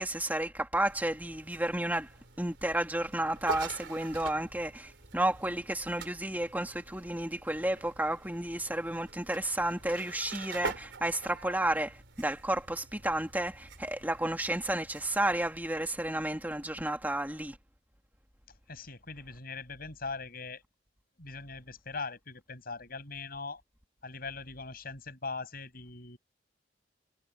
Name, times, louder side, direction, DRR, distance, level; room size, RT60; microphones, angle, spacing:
voice 1, 0.0-2.1 2.4-17.6, right 1 dB, 10° right, 2.2 m, -32 dB
sound 1, 0.9-16.9, right 4 dB, 80° right, 3.5 m, -46 dB
voice 2, 18.7-20.6 21.2-23.6 24.0-26.2, left 4 dB, 55° left, 7.7 m, -41 dB
head